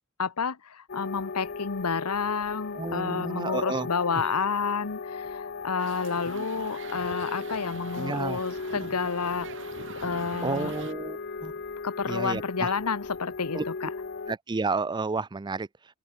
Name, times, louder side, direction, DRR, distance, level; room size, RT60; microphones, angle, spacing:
voice 1, 0.2-9.5 10.0-10.7 11.8-13.9, left 5 dB, 90° left, 1.0 m, -30 dB
sound 1, 0.9-14.4, left 4 dB, 50° left, 0.9 m, -37 dB
voice 2, 2.7-3.9 6.3-6.4 8.0-8.4 10.4-11.5 12.1-12.7 13.5-13.6 14.3-15.7, right 3 dB, 20° right, 0.4 m, -31 dB
sound 2, 5.8-10.9, right 5 dB, 60° right, 1.3 m, -44 dB
open air
head